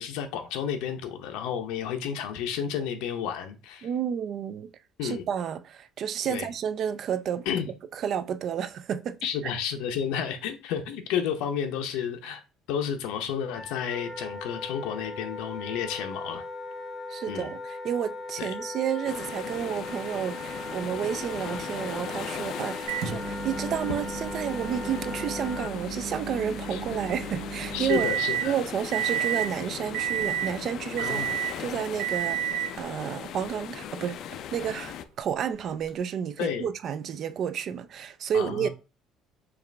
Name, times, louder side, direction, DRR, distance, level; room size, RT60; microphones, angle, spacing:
voice 1, 0.0-3.9 5.0-5.3 6.3-6.5 7.5-7.7 9.2-12.4 12.7-16.4 17.3-17.5 18.4-18.5 26.7-26.8 27.7-28.5 31.0-31.3 36.4-36.7 38.3-38.7, left 8 dB, 90° left, 0.6 m, -31 dB
voice 2, 3.8-4.7 5.0-7.5 7.9-9.2 17.1-28.1 28.4-32.4 32.8-34.2 34.5-38.7, right 8 dB, 40° right, 0.3 m, -31 dB
Wind instrument woodwind instrument, 13.5-25.7, left 1 dB, 5° left, 0.8 m, -38 dB
sound 1, 19.0-35.0, left 9 dB, 50° left, 0.3 m, -39 dB
Microwave oven, 22.9-28.5 28.9-29.5 29.9-30.6 31.0-31.6 32.0-32.8 33.8-33.9 35.9-36.0, right 9 dB, 70° right, 0.8 m, -31 dB
4.9 x 2.4 x 3.2 m
cardioid pair, 170°, 0 cm